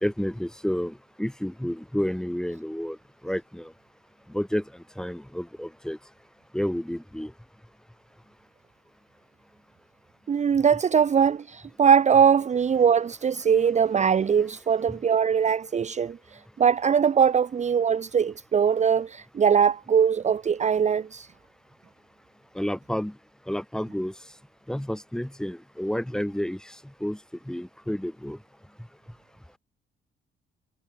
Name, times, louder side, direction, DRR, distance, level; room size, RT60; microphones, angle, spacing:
voice 1, 0.0-3.0 3.2-3.7 4.3-4.6 5.0-6.0 6.5-7.3 22.6-23.1 23.5-24.1 24.7-26.6 27.0-27.2 27.5-28.4, equal, 5° left, 3.5 m, -30 dB
voice 2, 10.3-21.3, right 7 dB, 35° right, 0.8 m, -21 dB
cardioid pair, 90°, 20 cm